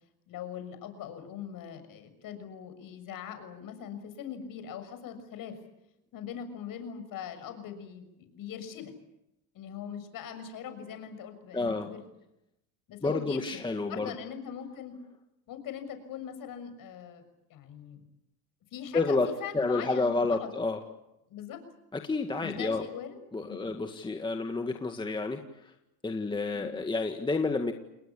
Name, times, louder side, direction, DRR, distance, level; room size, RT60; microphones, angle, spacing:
voice 1, 0.3-5.6 6.1-8.9 9.5-12.1 12.9-14.9 15.5-17.2 17.5-18.0 18.7-20.5 21.3-21.6 22.4-23.2 23.4-23.6 26.5-26.8, left 8 dB, 45° left, 9 dB, 6.6 m, -41 dB
voice 2, 11.5-11.9 13.0-14.1 18.9-20.8 21.9-22.9 23.3-25.4 26.0-27.7, left 3 dB, 10° left, 5 dB, 1.9 m, -29 dB
30.0 x 20.0 x 8.6 m, 0.87 s
supercardioid pair, 125°, 45 cm